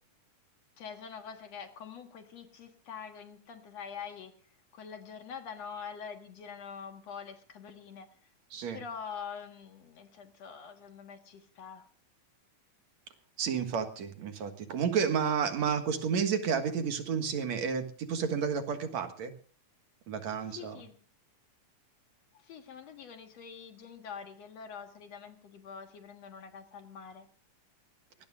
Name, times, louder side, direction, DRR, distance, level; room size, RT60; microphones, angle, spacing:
voice 1, 0.8-4.3 4.7-8.1 8.7-11.9 20.5-21.0 22.3-27.3, left 6 dB, 60° left, 6 dB, 2.5 m, -45 dB
voice 2, 13.4-19.3 20.1-20.8, right 6 dB, 65° right, 7 dB, 2.7 m, -31 dB
23.5 x 18.5 x 2.4 m, 0.43 s
omnidirectional pair, 3.7 m